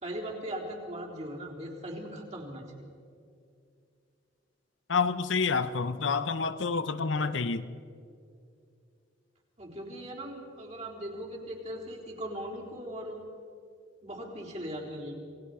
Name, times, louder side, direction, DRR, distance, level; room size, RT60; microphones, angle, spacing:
voice 1, 0.0-2.9 9.6-13.3 14.0-15.1, equal, 35° right, -3 dB, 3.9 m, -39 dB
voice 2, 4.9-7.7, left 5 dB, 75° left, 12 dB, 0.8 m, -28 dB
28.0 x 19.0 x 4.9 m, 2.4 s
head